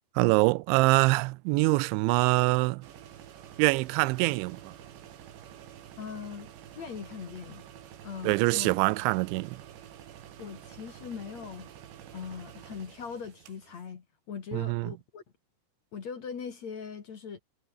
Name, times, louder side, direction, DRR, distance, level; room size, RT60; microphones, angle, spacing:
voice 1, 0.2-2.9 3.6-4.7 8.2-9.6 14.5-14.9, right 23 dB, 90° right, 3.0 m, -24 dB
sound 1, 2.8-13.9, right 10 dB, 70° right, 4.6 m, -49 dB
voice 2, 6.0-6.5 6.7-7.6 8.0-8.7 10.4-11.7 12.1-15.2 15.9-17.4, left 6 dB, 45° left, 2.9 m, -40 dB
omnidirectional pair, 5.2 m